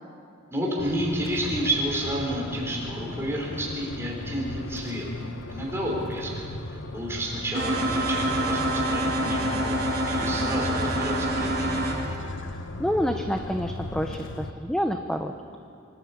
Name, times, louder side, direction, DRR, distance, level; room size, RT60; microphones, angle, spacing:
voice 1, 0.5-5.0 5.5-6.3 6.7-11.8, right 1 dB, 10° right, -3 dB, 4.7 m, -30 dB
sound 1, 0.8-14.5, left 2 dB, 60° left, 1.0 m, -37 dB
sound 2, 7.5-11.9, right 1 dB, 50° right, 5.5 m, -26 dB
voice 2, 12.8-15.6, equal, 5° left, 5 dB, 0.6 m, -28 dB
25.0 x 12.0 x 8.6 m, 2.4 s
head